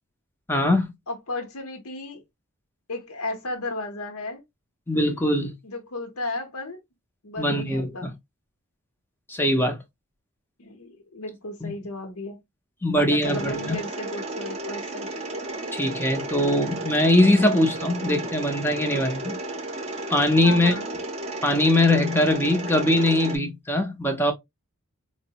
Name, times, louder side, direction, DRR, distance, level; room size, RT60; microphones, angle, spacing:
voice 1, 0.5-0.9 4.9-5.5 7.4-8.1 9.3-9.8 11.6-11.7 12.8-13.8 15.7-19.4 20.1-20.7 21.4-24.3, left 1 dB, 10° left, 0.5 m, -21 dB
voice 2, 1.1-2.2 2.9-4.4 5.6-6.8 7.2-8.1 10.6-12.4 13.0-15.1 20.4-20.9, left 2 dB, 70° left, 0.8 m, -34 dB
Mechanisms, 13.2-23.4, right 2 dB, 30° right, 0.6 m, -33 dB
4.4 x 2.0 x 2.7 m
head